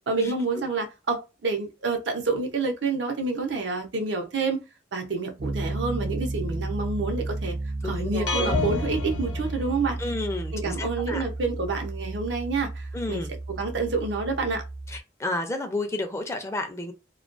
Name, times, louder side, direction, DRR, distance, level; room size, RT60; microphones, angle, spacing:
voice 1, 0.1-4.6 4.9-7.6 7.8-10.0 10.5-14.6, right 3 dB, 85° right, 0.7 m, -28 dB
Piano, 5.4-15.0, right 2 dB, 55° right, 0.4 m, -33 dB
voice 2, 7.8-8.5 10.0-11.2 12.9-13.3 14.9-16.9, left 2 dB, 15° left, 0.4 m, -31 dB
sound 1, 8.3-10.3, left 3 dB, 90° left, 0.7 m, -29 dB
2.3 x 2.2 x 2.4 m
head